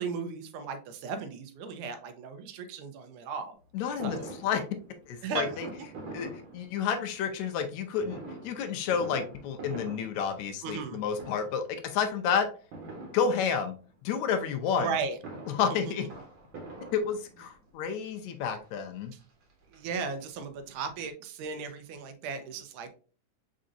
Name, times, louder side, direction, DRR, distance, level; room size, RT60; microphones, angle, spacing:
voice 1, 0.0-3.6 4.0-4.3 5.2-5.7 10.6-11.0 14.8-15.2 15.7-15.8 19.7-22.9, right 5 dB, 85° right, 8 dB, 2.1 m, -36 dB
voice 2, 3.7-4.2 4.4-4.6 5.1-5.7 6.1-6.3 6.5-8.2 8.4-12.5 13.1-13.8 14.0-14.9 15.5-16.1 16.9-19.1, left 7 dB, 80° left, 7 dB, 1.8 m, -30 dB
Fireworks, 4.0-7.2 8.0-10.9 11.1-11.8 12.7-13.8 14.9-17.6 18.4-18.5 18.8-18.9 19.2-20.4 20.8-20.9 21.0-21.1, right 2 dB, 50° right, 1.6 m, -44 dB
5.2 x 3.8 x 2.5 m, 0.38 s
omnidirectional pair, 3.5 m